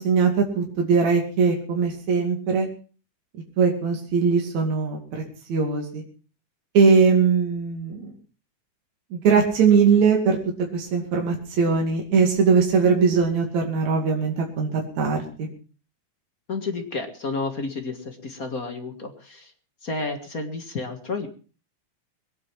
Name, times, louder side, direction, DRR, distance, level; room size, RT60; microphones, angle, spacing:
voice 1, 0.0-2.7 3.6-5.2 5.5-6.0 6.7-8.1 9.1-10.4 10.7-15.5, right 5 dB, 65° right, 1 dB, 3.8 m, -20 dB
voice 2, 16.5-19.5 19.8-21.3, left 3 dB, 35° left, 5 dB, 1.8 m, -31 dB
22.0 x 9.5 x 5.9 m, 0.40 s
omnidirectional pair, 3.5 m